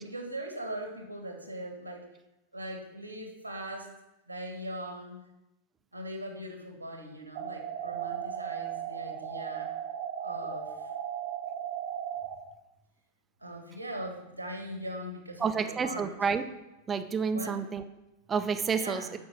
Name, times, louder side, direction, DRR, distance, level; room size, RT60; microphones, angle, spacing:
voice 1, 0.0-2.1 2.5-3.9 4.3-5.2 5.9-9.7 10.2-10.9 13.4-16.1 17.3-17.6 18.7-19.1, right 1 dB, 90° left, 3 dB, 1.8 m, -40 dB
sound 1, 7.4-12.4, right 9 dB, 50° right, 1.3 m, -36 dB
voice 2, 15.4-16.4 16.9-17.8 18.3-19.0, right 5 dB, 20° right, 9 dB, 0.7 m, -29 dB
9.3 x 6.3 x 6.0 m, 0.94 s
figure-of-eight pair, 90°, 0 cm